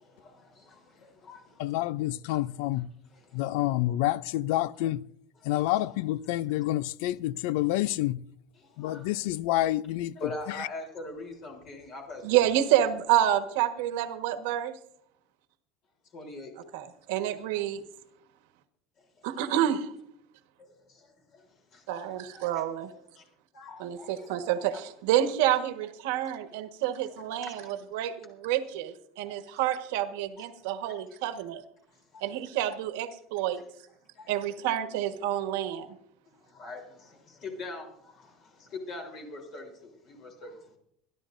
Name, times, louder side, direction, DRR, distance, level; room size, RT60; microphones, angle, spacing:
voice 1, 0.0-1.9 3.1-3.5 5.4-5.5 8.6-9.1 10.2-12.4 16.1-16.5 19.2-19.3 20.9-22.6 23.2-23.3 23.5-24.4 24.7-24.8 27.3-27.7 29.2-29.4 30.4-30.9 31.9-32.3 34.1-34.3 36.4-40.8, left 2 dB, 45° left, 3.5 m, -44 dB
voice 2, 1.6-2.9 3.3-5.0 5.4-8.2 8.8-10.1 10.5-10.7, left 15 dB, 75° left, 0.4 m, -28 dB
voice 3, 12.2-14.8 16.7-17.8 19.2-19.9 21.9-22.9 23.8-31.6 32.2-33.6 34.3-36.0, right 11 dB, 80° right, 1.3 m, -28 dB
26.0 x 11.5 x 2.6 m
supercardioid pair, 140°, 0 cm